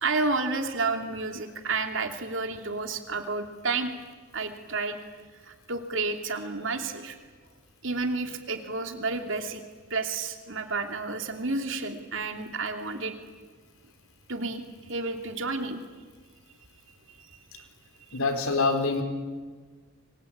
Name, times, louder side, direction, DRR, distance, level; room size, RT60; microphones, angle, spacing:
voice 1, 0.0-3.9 4.3-5.0 5.4-7.2 7.8-9.6 9.9-13.2 14.3-14.6 14.9-15.8 17.6-17.7 18.1-18.2, right 3 dB, 60° right, 5 dB, 2.8 m, -30 dB
voice 2, 18.1-19.0, left 3 dB, 75° left, 5 dB, 4.1 m, -25 dB
28.0 x 24.0 x 8.8 m, 1.5 s
head